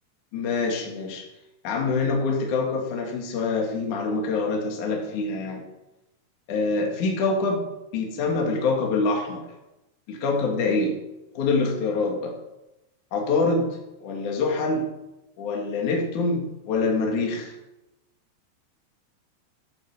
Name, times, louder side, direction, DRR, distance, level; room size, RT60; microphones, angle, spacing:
voice 1, 0.3-1.3 1.6-5.6 6.5-9.5 10.1-11.0 11.3-12.3 13.1-14.9 15.4-17.5, left 3 dB, 50° left, 0 dB, 3.3 m, -25 dB
12.0 x 9.9 x 7.3 m, 0.95 s
omnidirectional pair, 5.1 m